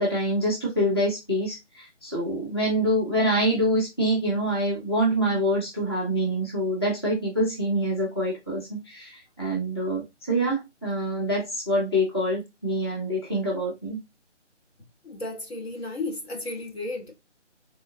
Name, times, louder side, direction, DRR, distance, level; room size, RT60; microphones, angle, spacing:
voice 1, 0.0-14.0, equal, 20° left, 0.7 m, -26 dB
voice 2, 15.0-17.1, left 2 dB, 60° left, 1.3 m, -33 dB
3.7 x 2.3 x 2.6 m
figure-of-eight pair, 160°, 36 cm